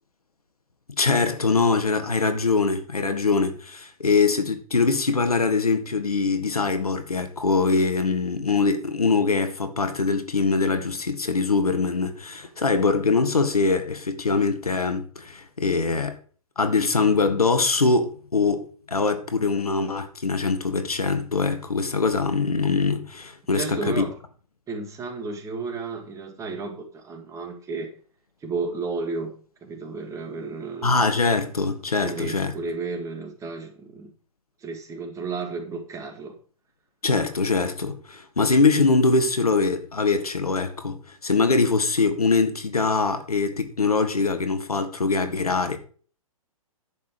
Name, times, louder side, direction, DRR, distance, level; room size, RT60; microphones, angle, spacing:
voice 1, 1.0-16.2 16.6-24.0 30.8-32.5 37.0-45.8, left 4 dB, 85° left, 1.7 m, -23 dB
voice 2, 23.5-24.2 24.7-27.9 28.4-31.0 32.0-34.1 34.6-36.4, right 4 dB, 15° right, 2.0 m, -33 dB
10.5 x 7.4 x 4.8 m
figure-of-eight pair, 120°, 18 cm